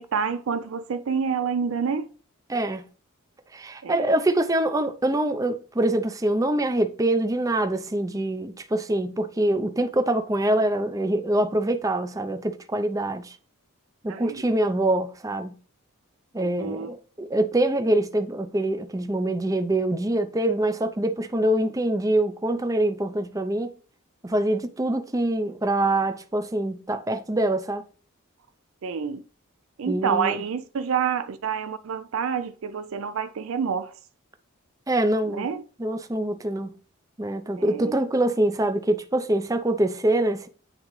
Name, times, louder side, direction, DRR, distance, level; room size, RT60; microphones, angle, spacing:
voice 1, 0.0-2.1 3.8-4.1 14.1-14.4 16.4-16.9 28.8-29.2 29.8-34.0 35.3-35.6 37.6-37.9, right 6 dB, 70° right, 0.4 m, -28 dB
voice 2, 2.5-2.9 3.5-13.4 14.0-15.6 16.3-23.7 24.2-27.8 29.9-30.4 34.9-35.5 35.8-36.7 37.2-40.5, right 1 dB, 15° right, 0.5 m, -24 dB
9.0 x 3.7 x 3.1 m
head